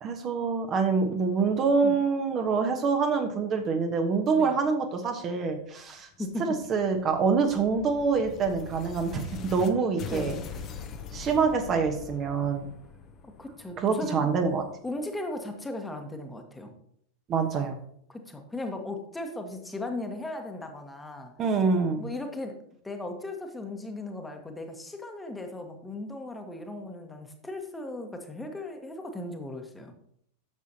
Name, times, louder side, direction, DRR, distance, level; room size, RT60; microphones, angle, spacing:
voice 1, 0.0-6.1 6.5-10.4 11.1-12.7 13.8-14.6 17.3-17.8 21.4-22.0, right 5 dB, 30° right, 4 dB, 1.1 m, -26 dB
voice 2, 6.2-6.6 10.1-10.4 13.2-14.3 14.8-16.7 18.1-21.3 22.0-22.5 22.8-29.9, left 2 dB, 10° left, 4 dB, 1.3 m, -37 dB
sound 1, 6.3-9.7 10.0-14.7, left 6 dB, 30° left, 0.9 m, -42 dB
10.5 x 7.3 x 2.9 m, 0.68 s
figure-of-eight pair, 90°, 0 cm